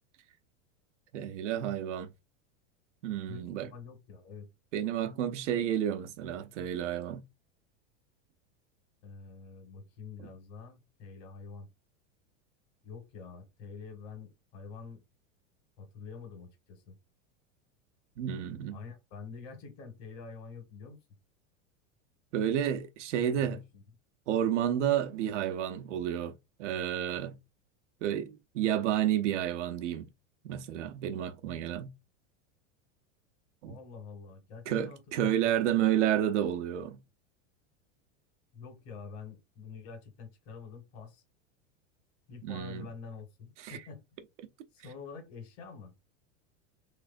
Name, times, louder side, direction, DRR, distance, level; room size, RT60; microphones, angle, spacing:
voice 1, 1.1-2.1 3.0-3.7 4.7-7.2 18.2-18.8 22.3-23.6 24.3-26.3 26.6-27.3 28.0-30.1 30.4-31.9 33.6-33.8 34.7-37.0 42.4-42.8 43.6-43.8, right 10 dB, 85° right, 0.8 m, -30 dB
voice 2, 3.3-4.5 9.0-11.7 12.8-15.0 15.8-17.0 18.7-21.0 23.4-23.8 33.7-35.8 38.5-41.2 42.3-44.0 44.7-45.9, left 5 dB, 60° left, 1.8 m, -47 dB
3.4 x 3.2 x 2.6 m
supercardioid pair, 135°, 35 cm